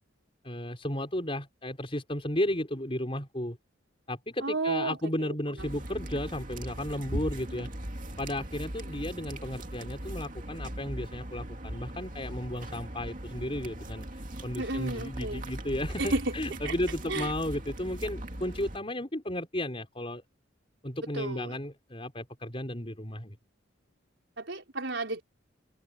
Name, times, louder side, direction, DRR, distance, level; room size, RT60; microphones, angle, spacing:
voice 1, 0.4-3.6 4.1-7.7 8.2-14.1 14.4-20.2 20.8-23.4, left 1 dB, 30° left, 6.0 m, -34 dB
voice 2, 4.4-5.7 14.6-15.4 16.0-16.3 16.6-16.7 17.1-17.3 21.1-21.6 24.4-25.2, right 2 dB, 65° right, 5.2 m, -32 dB
sound 1, 5.6-18.8, right 1 dB, 40° right, 2.6 m, -39 dB
head